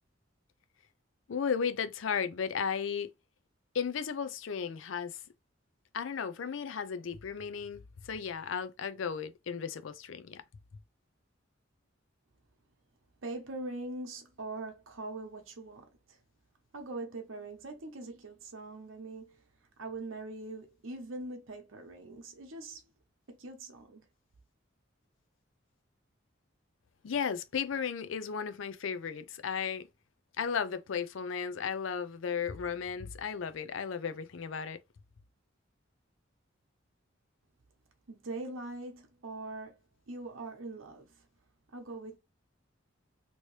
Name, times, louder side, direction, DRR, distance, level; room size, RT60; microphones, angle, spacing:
voice 1, 1.3-3.1 3.7-5.2 5.9-10.4 27.0-29.9 30.4-34.8, left 6 dB, 70° left, 0.4 m, -35 dB
voice 2, 13.2-16.2 16.7-19.4 19.8-22.8 23.3-24.1 38.1-39.8 40.1-41.3 41.7-42.2, right 2 dB, 85° right, 0.9 m, -42 dB
3.0 x 2.8 x 3.1 m
head